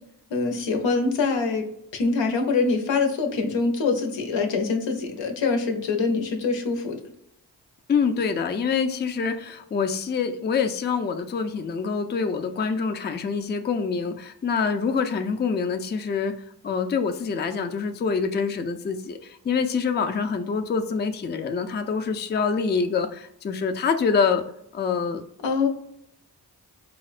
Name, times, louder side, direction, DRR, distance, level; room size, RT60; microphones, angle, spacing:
voice 1, 0.3-1.6 1.9-7.0 25.4-25.7, left 4 dB, 85° left, 4 dB, 0.7 m, -24 dB
voice 2, 7.9-16.3 16.6-24.4 24.7-25.2, left 5 dB, 25° left, 7 dB, 0.3 m, -25 dB
4.2 x 2.1 x 2.4 m, 0.76 s
cardioid pair, 40°, 43 cm